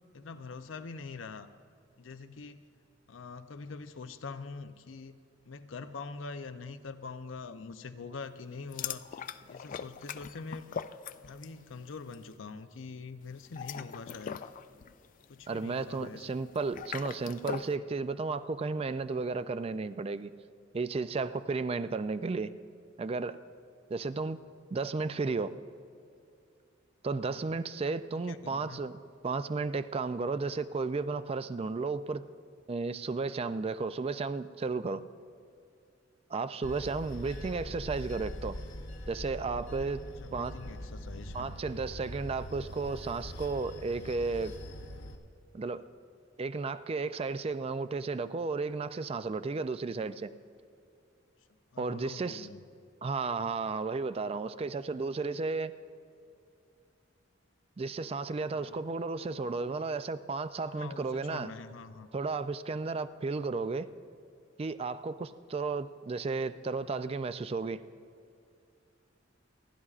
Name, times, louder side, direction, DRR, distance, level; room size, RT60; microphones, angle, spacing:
voice 1, 0.1-1.5 2.0-2.7 3.1-5.2 5.5-9.2 9.5-10.7 11.3-14.4 15.3-16.3 27.3-27.4 28.3-28.9 37.5-37.8 40.1-41.5 51.7-52.6 58.5-58.9 60.7-62.1, left 4 dB, 85° left, 10 dB, 0.6 m, -44 dB
Drinking Water, 8.7-11.6 11.9-12.2 13.4-17.8, left 7 dB, 45° left, 0.3 m, -41 dB
voice 2, 15.5-20.3 20.7-22.5 23.0-23.4 23.9-24.4 24.7-25.5 27.0-32.2 32.7-35.0 36.3-38.6 39.1-40.0 40.3-40.5 41.3-44.5 45.5-45.8 46.4-50.3 51.8-52.5 53.0-55.7 57.8-61.5 62.1-63.9 64.6-67.8, right 4 dB, 30° right, 13 dB, 0.4 m, -33 dB
Bell / Train, 36.6-45.2, equal, 70° left, 1.0 m, -43 dB
27.5 x 11.0 x 2.4 m, 2.4 s
head